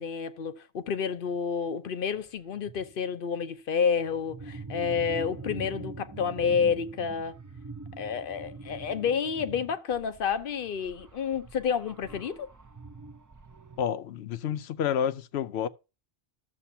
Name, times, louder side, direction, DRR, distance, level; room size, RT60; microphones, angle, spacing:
voice 1, 0.0-7.4 8.0-12.5, left 6 dB, 60° left, 0.9 m, -29 dB
sound 1, 2.1-2.3 2.5-3.0 3.9-13.9, right 3 dB, 25° right, 0.5 m, -44 dB
voice 2, 13.8-15.7, left 9 dB, 90° left, 0.9 m, -29 dB
13.0 x 7.0 x 2.7 m
omnidirectional pair, 1.0 m